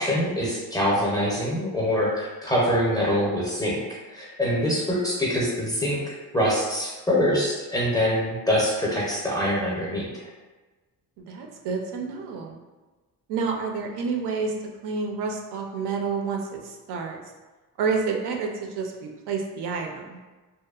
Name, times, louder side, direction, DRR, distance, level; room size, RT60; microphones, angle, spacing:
voice 1, 0.0-3.8 4.1-6.0 6.3-10.1, equal, 10° left, -6 dB, 0.4 m, -24 dB
voice 2, 11.2-12.6 13.3-14.5 14.8-17.2 17.8-20.2, right 5 dB, 80° right, 2 dB, 0.5 m, -29 dB
2.7 x 2.0 x 2.3 m, 1.2 s
cardioid pair, 150°, 39 cm